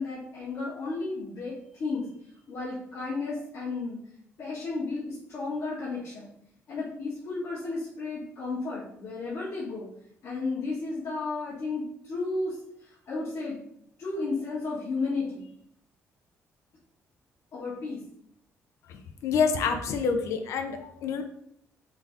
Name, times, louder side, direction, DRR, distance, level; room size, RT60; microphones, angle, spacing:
voice 1, 0.0-2.1 2.5-4.0 4.4-6.3 6.7-9.9 10.2-13.6 14.0-15.5 17.5-18.0, left 3 dB, 55° left, -10 dB, 1.4 m, -33 dB
voice 2, 18.9-21.2, left 5 dB, 70° left, 7 dB, 0.5 m, -27 dB
3.8 x 2.8 x 3.6 m, 0.71 s
cardioid pair, 145°, 5 cm